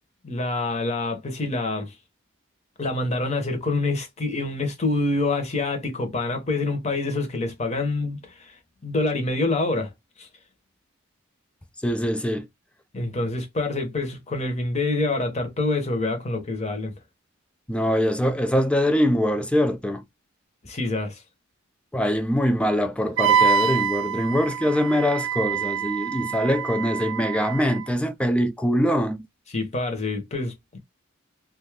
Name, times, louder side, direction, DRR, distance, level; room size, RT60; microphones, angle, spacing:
voice 1, 0.2-1.9 2.8-9.9 10.2-10.3 12.9-16.9 20.6-21.2 29.5-30.8, left 2 dB, 30° left, 0.8 m, -26 dB
voice 2, 11.8-12.5 17.7-20.0 21.9-29.2, equal, 5° left, 0.3 m, -23 dB
Wind instrument woodwind instrument, 23.2-27.8, right 7 dB, 60° right, 0.4 m, -25 dB
2.5 x 2.3 x 3.2 m
head